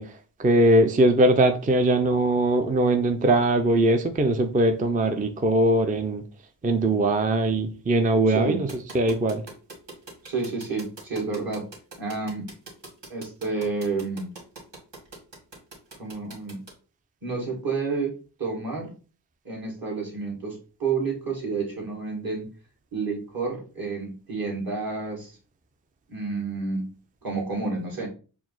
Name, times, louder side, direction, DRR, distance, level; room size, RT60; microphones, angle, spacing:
voice 1, 0.0-6.2 6.6-8.7 8.9-9.4, right 1 dB, 20° right, 7 dB, 0.5 m, -21 dB
voice 2, 8.3-8.6 10.2-11.7 12.0-12.5 13.1-14.3 16.0-16.6 17.2-18.1 18.4-18.9 19.4-22.5 22.9-25.4 26.1-26.9 27.2-28.1, right 4 dB, 55° right, -1 dB, 1.9 m, -30 dB
sound 1, 8.7-16.7, right 3 dB, 75° right, 1.9 m, -42 dB
4.7 x 2.0 x 3.7 m, 0.35 s
cardioid pair, 50°, 43 cm